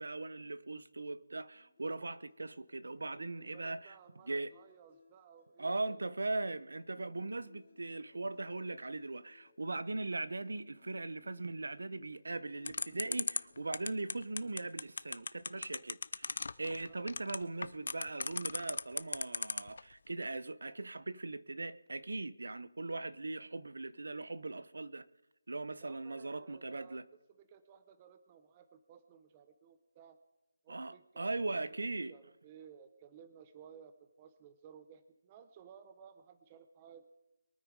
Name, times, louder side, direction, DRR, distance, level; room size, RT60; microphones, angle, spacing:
voice 1, 0.0-3.9 4.3-4.5 5.6-25.1 25.5-27.0 30.7-32.1, right 2 dB, 65° right, 0.8 m, -40 dB
sound 1, 1.5-14.0, left 6 dB, 20° left, 2.4 m, -64 dB
voice 2, 3.4-6.0 16.8-17.1 25.8-30.2 30.6-37.1, right 7 dB, 15° right, 0.7 m, -58 dB
sound 2, 12.6-19.8, left 4 dB, 45° left, 0.5 m, -36 dB
22.5 x 9.3 x 4.8 m
figure-of-eight pair, 175°, 0 cm